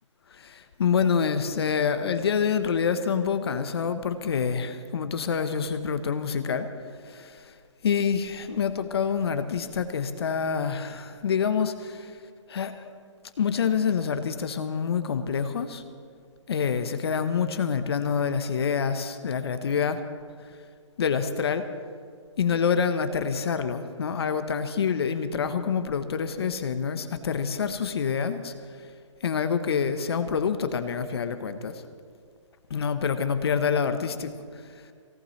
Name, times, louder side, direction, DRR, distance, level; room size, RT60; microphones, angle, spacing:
voice 1, 0.3-6.7 7.0-7.5 7.8-12.1 12.5-12.9 13.4-15.8 16.5-20.0 21.0-21.7 22.4-28.5 29.2-31.8 32.7-34.3, left 6 dB, 55° left, 10 dB, 1.1 m, -27 dB
19.5 x 17.5 x 3.3 m, 2.1 s
hypercardioid pair, 160°, 16 cm